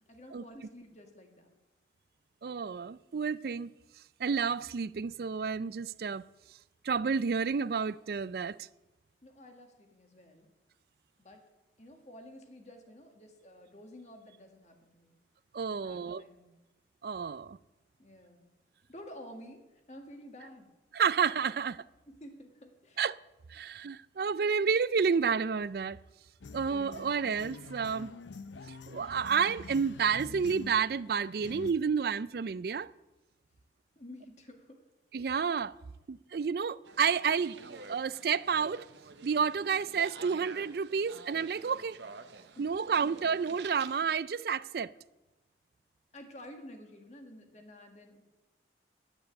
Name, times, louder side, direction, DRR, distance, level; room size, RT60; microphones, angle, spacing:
voice 1, 0.1-1.6 9.2-10.5 11.2-11.4 11.8-15.2 15.7-16.6 18.0-18.5 18.9-20.7 22.1-23.0 34.0-34.8 42.6-42.7 43.0-43.1 46.1-48.2, left 1 dB, 40° left, 1.7 m, -51 dB
voice 2, 2.4-3.7 4.2-6.2 6.8-8.7 15.5-16.2 17.0-17.6 20.9-21.8 23.0-23.2 23.5-26.0 26.5-28.1 28.9-32.9 35.1-35.7 36.1-37.6 37.9-38.8 39.2-42.0 42.6-44.9, right 6 dB, 55° right, 0.4 m, -30 dB
sound 1, 26.4-31.7, left 4 dB, 85° left, 0.6 m, -46 dB
sound 2, 36.9-44.0, right 4 dB, 75° right, 0.9 m, -49 dB
10.5 x 9.0 x 9.6 m
head